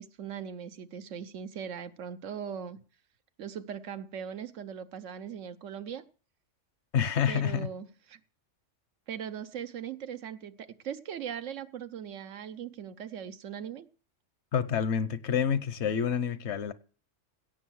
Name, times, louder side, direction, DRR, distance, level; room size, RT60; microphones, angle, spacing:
voice 1, 0.0-2.8 3.4-6.0 7.3-8.2 9.1-13.9, right 8 dB, 85° right, 1.2 m, -39 dB
voice 2, 6.9-7.7 14.5-16.7, left 8 dB, 70° left, 1.1 m, -28 dB
17.0 x 6.4 x 6.3 m
omnidirectional pair, 1.3 m